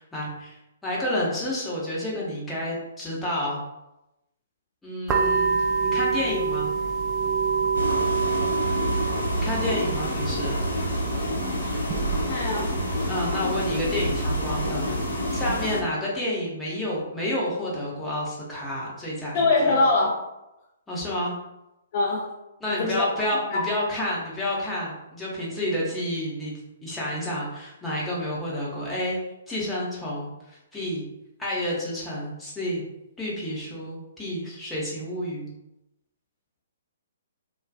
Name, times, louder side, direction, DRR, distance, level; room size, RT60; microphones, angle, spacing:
voice 1, 0.0-3.6 4.8-6.7 9.3-10.6 13.1-19.8 20.9-21.3 22.6-26.5 26.8-29.2 29.5-31.0 31.4-32.8 33.2-35.5, left 1 dB, 5° left, -6 dB, 0.7 m, -30 dB
sound 1, 5.1-15.7, right 5 dB, 20° right, 0.3 m, -28 dB
sound 2, 7.7-15.8, equal, 80° left, 0.7 m, -28 dB
voice 2, 12.2-12.7 19.3-20.2 21.9-22.3 22.7-23.0 23.5-23.6, left 3 dB, 40° left, -3 dB, 0.4 m, -23 dB
2.5 x 2.3 x 2.3 m, 0.91 s
figure-of-eight pair, 125°, 0 cm